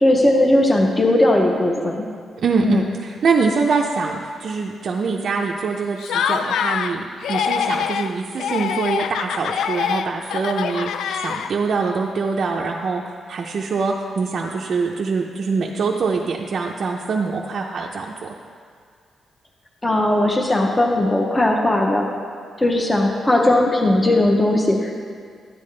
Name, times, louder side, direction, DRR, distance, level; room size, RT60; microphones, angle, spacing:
voice 1, 0.0-2.0 2.6-2.9 19.8-22.1 22.6-25.0, left 1 dB, 15° left, 1 dB, 0.6 m, -18 dB
voice 2, 2.4-10.9 11.2-18.3, right 4 dB, 45° right, -1 dB, 0.5 m, -24 dB
Laughter, 6.0-6.9 7.2-8.1 8.4-11.7, left 8 dB, 90° left, 0.3 m, -24 dB
12.0 x 8.5 x 3.2 m, 2.1 s
wide cardioid pair, 180°, 0 cm